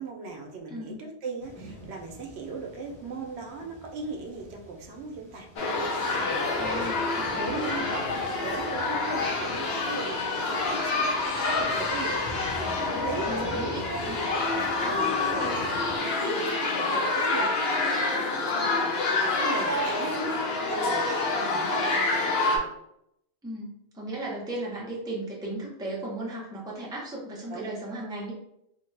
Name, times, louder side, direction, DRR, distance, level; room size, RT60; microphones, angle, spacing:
voice 1, 0.0-5.5 6.3-6.5 7.4-7.7 8.4-11.1 11.5-14.1 14.8-15.1 15.4-22.7 27.5-27.7, right 3 dB, 75° right, 2 dB, 0.8 m, -38 dB
sound 1, 1.4-16.0, left 1 dB, 25° left, 1.0 m, -45 dB
sound 2, 5.6-22.6, left 3 dB, 70° left, 0.9 m, -27 dB
voice 2, 6.6-7.9 13.3-13.8 14.1-14.2 14.8-14.9 15.2-15.5 23.4-28.3, right 1 dB, 5° right, -4 dB, 0.5 m, -36 dB
3.1 x 2.1 x 3.2 m, 0.78 s
omnidirectional pair, 1.1 m